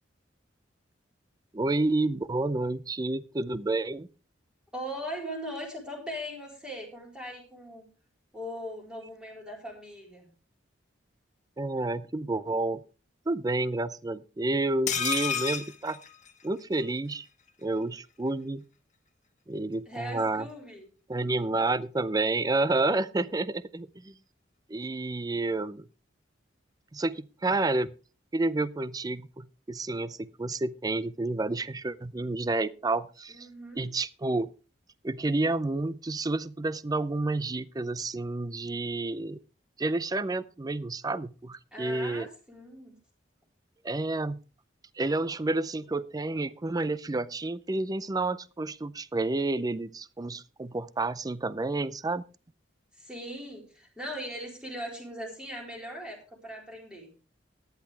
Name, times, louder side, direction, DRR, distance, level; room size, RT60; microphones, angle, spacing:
voice 1, 1.5-4.1 11.6-12.8 13.3-16.0 16.4-17.3 17.6-18.6 19.5-20.5 21.1-24.1 24.7-25.8 26.9-27.9 28.3-33.5 33.8-34.5 35.0-39.4 39.8-42.3 43.8-44.4 45.0-52.2, right 2 dB, 20° right, 17 dB, 0.5 m, -30 dB
voice 2, 4.7-7.9 8.3-10.3 19.9-20.9 33.3-33.9 41.7-42.9 52.9-57.1, equal, 5° right, -1 dB, 4.1 m, -39 dB
sound 1, 14.9-16.8 17.1-17.2 17.5-17.6, left 7 dB, 40° left, 1.5 m, -31 dB
14.5 x 10.5 x 3.3 m, 0.34 s
head